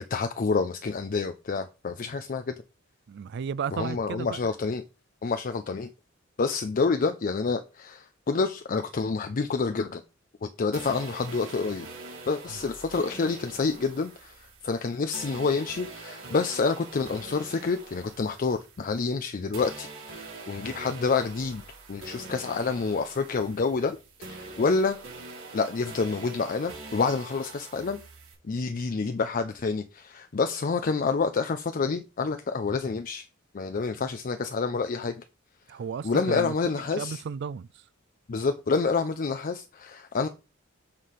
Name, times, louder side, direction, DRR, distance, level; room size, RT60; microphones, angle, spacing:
voice 1, 0.0-2.6 3.7-4.8 5.2-5.9 6.4-10.0 10.4-11.9 12.3-21.6 21.9-25.0 25.5-28.0 28.4-33.3 33.5-35.2 36.0-37.2 38.3-40.3, left 4 dB, 45° left, 0.5 m, -28 dB
voice 2, 3.1-4.4 35.7-36.5 37.0-37.7, right 6 dB, 55° right, 0.3 m, -33 dB
sound 1, 10.7-19.2 19.5-28.3, right 3 dB, 85° right, 3.2 m, -44 dB
7.3 x 3.3 x 5.8 m
head